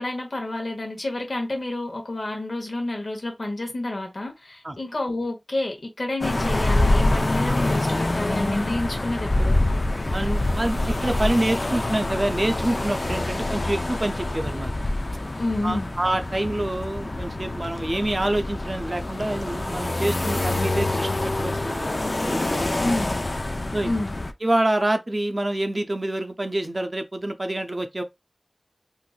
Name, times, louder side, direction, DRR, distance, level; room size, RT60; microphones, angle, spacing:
voice 1, 0.0-9.6 15.4-15.9 22.8-23.1 23.8-24.1, left 2 dB, 70° left, 1.1 m, -29 dB
sound 1, 6.2-24.3, left 2 dB, 50° left, 0.4 m, -26 dB
voice 2, 10.1-14.7 15.6-22.6 23.7-23.9 24.4-28.0, right 1 dB, 45° right, 0.5 m, -26 dB
3.8 x 2.5 x 2.4 m
wide cardioid pair, 45°, 0 cm